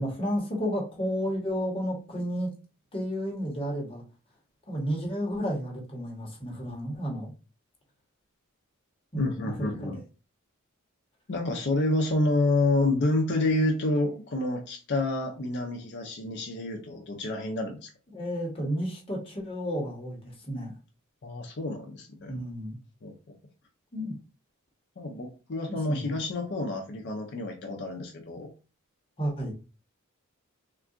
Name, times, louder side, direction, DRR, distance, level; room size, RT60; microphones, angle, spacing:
voice 1, 0.0-2.5 2.9-4.0 4.7-7.3 9.1-9.9 18.1-20.7 22.3-22.8 23.9-24.1 25.7-26.2 29.2-29.5, equal, 25° left, -1 dB, 1.0 m, -32 dB
voice 2, 9.2-10.0 11.3-17.9 21.2-22.3 23.0-23.1 25.0-28.5, left 2 dB, 55° left, 2 dB, 0.5 m, -28 dB
3.7 x 2.3 x 2.4 m, 0.32 s
head